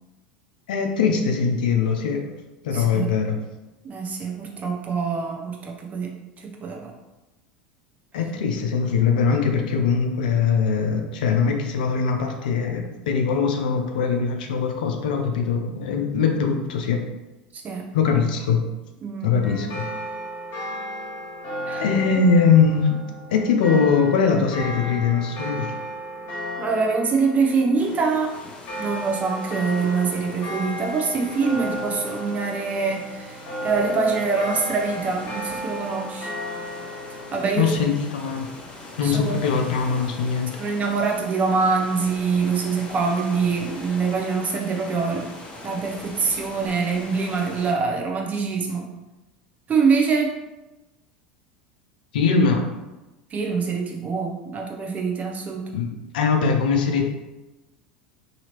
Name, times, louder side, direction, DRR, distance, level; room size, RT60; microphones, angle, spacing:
voice 1, 0.7-2.2 2.6-3.4 8.1-17.0 17.9-18.6 19.2-19.9 21.8-23.0 23.3-25.7 37.6-38.5 39.0-40.6 52.1-52.6 55.7-57.0, left 5 dB, 70° left, 3 dB, 0.5 m, -21 dB
voice 2, 2.7-3.1 3.8-6.9 17.5-17.9 19.0-19.3 21.7-21.9 26.6-28.3 28.8-36.3 37.3-37.8 39.0-39.4 40.6-45.3 45.6-48.9 49.7-50.3 53.3-55.7, right 4 dB, 30° right, 1 dB, 0.6 m, -24 dB
sound 1, 19.4-37.5, equal, 50° left, 1.2 m, -34 dB
sound 2, 27.8-47.7, left 2 dB, 25° left, 0.8 m, -41 dB
2.8 x 2.8 x 2.9 m, 1.0 s
hypercardioid pair, 80°, 5 cm